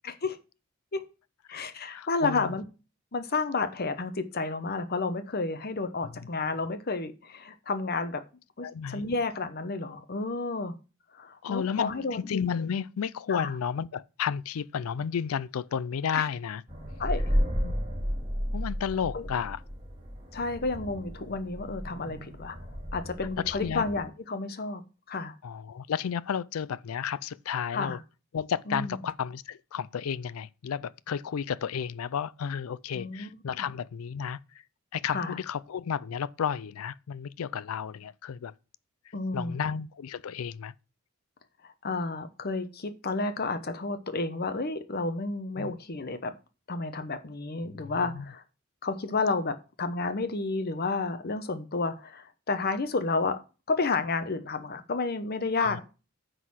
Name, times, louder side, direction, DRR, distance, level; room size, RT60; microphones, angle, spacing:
voice 1, 0.0-0.4 0.9-1.1 1.5-2.6 3.1-8.2 8.6-10.7 11.1-12.3 13.3-13.5 16.1-16.2 17.0-17.2 19.1-19.3 20.3-22.6 22.9-24.8 25.1-25.4 27.7-28.0 28.7-29.0 32.9-33.4 35.1-35.4 39.1-39.8 41.6-46.3 46.7-48.4 48.8-53.4 53.7-55.8, left 3 dB, 45° left, 0.9 m, -31 dB
voice 2, 1.9-2.5 6.0-6.3 8.6-9.0 11.4-16.6 17.6-17.7 18.5-19.6 23.5-23.8 25.4-28.0 28.3-34.4 34.9-38.5 39.3-40.7 45.6-45.8 47.7-48.3 55.6-55.8, left 7 dB, 90° left, 0.4 m, -32 dB
sound 1, 16.7-24.1, equal, 35° right, 3.8 m, -33 dB
9.4 x 4.1 x 6.2 m
head